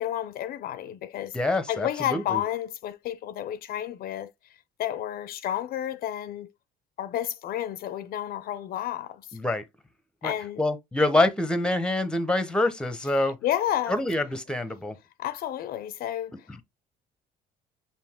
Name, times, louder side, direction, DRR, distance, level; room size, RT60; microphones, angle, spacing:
voice 1, 0.0-1.4 1.7-4.3 4.8-6.5 7.0-9.4 10.2-10.6 13.2-14.0 15.2-16.6, left 11 dB, 65° left, 0.5 m, -31 dB
voice 2, 1.3-2.4 9.3-9.6 10.2-10.3 10.6-13.4 13.9-15.0, left 2 dB, 5° left, 0.7 m, -25 dB
5.3 x 2.7 x 3.5 m
cardioid pair, 110°, 17 cm